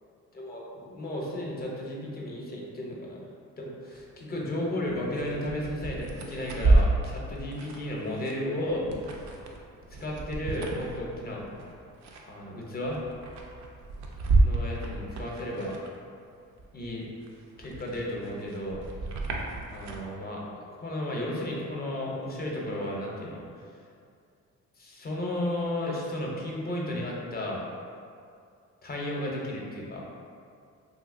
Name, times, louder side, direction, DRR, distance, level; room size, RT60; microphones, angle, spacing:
voice 1, 0.3-3.3 3.6-8.9 10.0-11.4 12.2-13.0 14.4-15.8 16.7-17.1 17.6-18.8 19.7-20.4 20.7-23.5 24.8-27.6 28.8-30.0, left 1 dB, 30° left, -3 dB, 0.6 m, -33 dB
sound 1, 3.9-4.0 4.4-16.2 16.6-20.1, right 2 dB, 65° right, 0.5 m, -30 dB
2.8 x 2.8 x 2.5 m, 2.3 s
cardioid pair, 90°, 30 cm